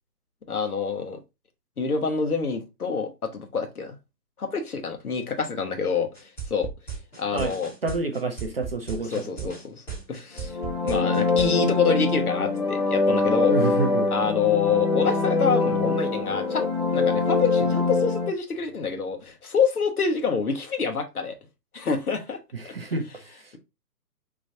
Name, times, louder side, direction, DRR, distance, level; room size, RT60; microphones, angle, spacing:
voice 1, 0.5-1.2 1.8-3.9 4.4-6.7 7.2-7.7 9.1-9.8 10.1-10.6 10.8-13.5 14.1-16.7 16.9-21.3 21.7-22.4, left 5 dB, 60° left, 1.2 m, -27 dB
sound 1, 6.1-11.5, right 6 dB, 5° left, 1.1 m, -35 dB
voice 2, 7.8-9.5 13.5-14.1 22.5-23.6, right 3 dB, 35° right, 0.6 m, -29 dB
sound 2, 10.4-18.3, left 3 dB, 30° left, 1.0 m, -24 dB
5.1 x 3.1 x 2.6 m
figure-of-eight pair, 135°, 49 cm